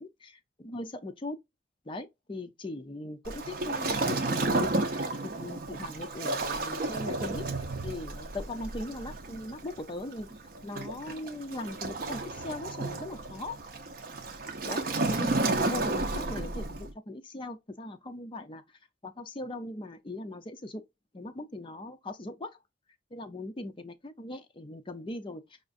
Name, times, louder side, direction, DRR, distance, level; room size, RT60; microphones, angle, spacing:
voice 1, 0.0-1.4 1.9-7.5 7.8-10.3 10.6-13.6 14.7-18.6 19.0-20.8 21.1-22.5 23.1-25.4, left 2 dB, 30° left, 0.5 m, -39 dB
Waves surf, 3.2-16.9, right 2 dB, 55° right, 0.6 m, -32 dB
5.0 x 2.5 x 2.4 m
head